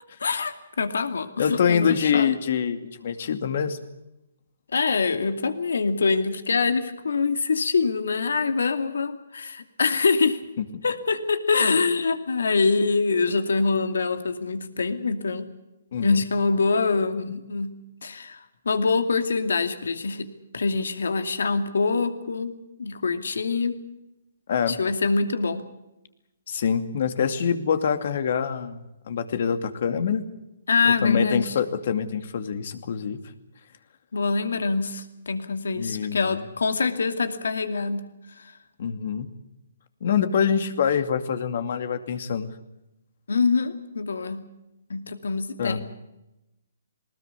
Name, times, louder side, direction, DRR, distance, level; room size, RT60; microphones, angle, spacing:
voice 1, 0.2-2.3 4.7-10.4 10.8-15.5 16.0-17.7 18.0-18.4 18.6-20.3 20.5-22.5 22.8-23.8 24.7-25.6 30.7-31.5 34.1-38.1 43.3-44.4 44.9-45.8, left 4 dB, 75° left, 9 dB, 2.5 m, -24 dB
voice 2, 1.4-3.8 10.6-10.7 15.9-16.2 24.5-24.8 26.5-30.2 30.9-33.2 35.8-36.4 38.8-39.3 40.0-42.5 45.6-45.8, left 7 dB, 60° left, 9 dB, 2.5 m, -25 dB
20.0 x 20.0 x 8.3 m, 0.93 s
hypercardioid pair, 140°, 0 cm